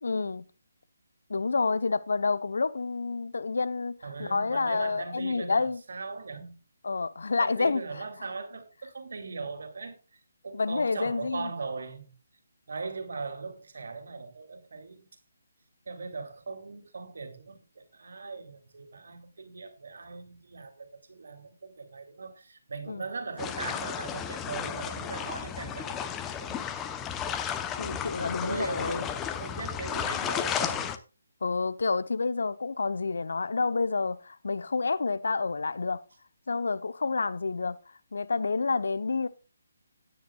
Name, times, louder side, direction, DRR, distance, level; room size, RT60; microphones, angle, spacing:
voice 1, 0.0-0.4 1.3-5.8 6.8-7.8 10.5-11.5 22.9-23.0 27.8-29.1 31.4-36.0 36.5-37.8 38.1-39.3, left 4 dB, 65° left, 0.9 m, -29 dB
voice 2, 4.0-6.6 7.4-12.1 12.7-15.0 15.9-26.6 28.4-29.1 29.4-30.9, right 4 dB, 60° right, 2.9 m, -39 dB
sound 1, 23.4-31.0, left 8 dB, 15° left, 0.8 m, -33 dB
15.5 x 9.9 x 2.4 m
figure-of-eight pair, 145°, 0 cm